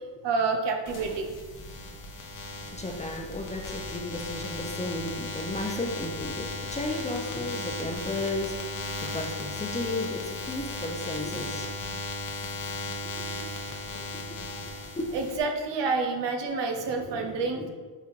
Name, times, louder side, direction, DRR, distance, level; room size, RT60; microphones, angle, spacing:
voice 1, 0.2-1.3 15.1-17.7, right 4 dB, 65° right, 4 dB, 1.0 m, -28 dB
sound 1, 0.9-15.4, left 2 dB, 40° left, 1.1 m, -36 dB
voice 2, 2.7-11.7 13.2-13.3 14.9-15.1 17.0-17.7, left 2 dB, 15° left, 1 dB, 0.8 m, -34 dB
6.0 x 3.5 x 4.7 m, 1.4 s
cardioid pair, 95°, 46 cm